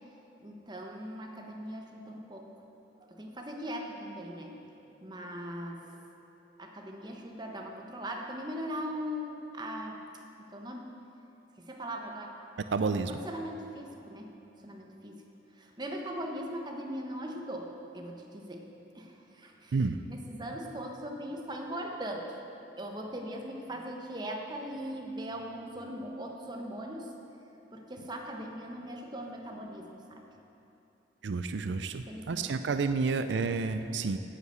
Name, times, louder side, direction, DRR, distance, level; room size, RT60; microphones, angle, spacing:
voice 1, 0.1-2.5 2.9-6.0 6.6-10.0 10.4-10.9 11.6-12.3 13.1-14.3 14.6-15.2 15.6-18.7 18.9-19.8 20.1-22.2 22.8-27.1 27.7-30.2 31.9-32.5, equal, 25° right, 1 dB, 1.1 m, -40 dB
voice 2, 12.7-13.1 19.7-20.0 31.2-34.2, right 4 dB, 90° right, 9 dB, 0.5 m, -30 dB
9.9 x 8.3 x 7.9 m, 2.9 s
head